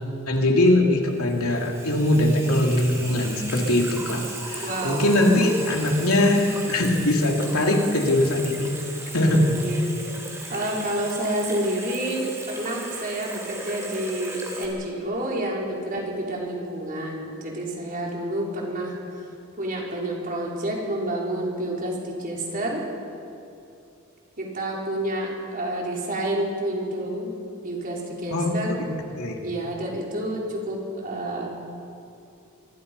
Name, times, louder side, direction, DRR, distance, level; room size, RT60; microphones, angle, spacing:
voice 1, 0.3-8.7 9.1-9.6 28.3-28.8 29.2-29.4, left 1 dB, 70° left, 1 dB, 3.2 m, -21 dB
Water tap faucet / Sink (filling or washing), 1.0-14.7, right 2 dB, 15° right, 4.0 m, -37 dB
voice 2, 4.6-5.1 9.5-10.1 10.5-19.0 19.2-19.3 19.6-22.8 24.4-27.4 27.6-28.8 29.4-31.5, right 1 dB, 40° right, -3 dB, 5.2 m, -29 dB
25.5 x 25.0 x 5.7 m, 2.6 s
head